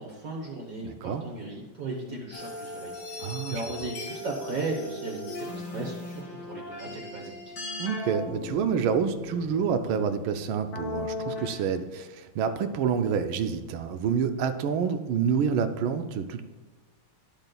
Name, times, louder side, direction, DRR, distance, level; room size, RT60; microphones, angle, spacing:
voice 1, 0.0-7.6, right 2 dB, 50° right, -1 dB, 1.3 m, -36 dB
voice 2, 0.8-1.2 3.2-3.6 7.8-16.4, right 7 dB, 80° right, 9 dB, 1.4 m, -28 dB
sound 1, 2.3-11.7, left 2 dB, 85° left, 3.1 m, -38 dB
10.5 x 7.8 x 2.3 m, 1.3 s
omnidirectional pair, 2.3 m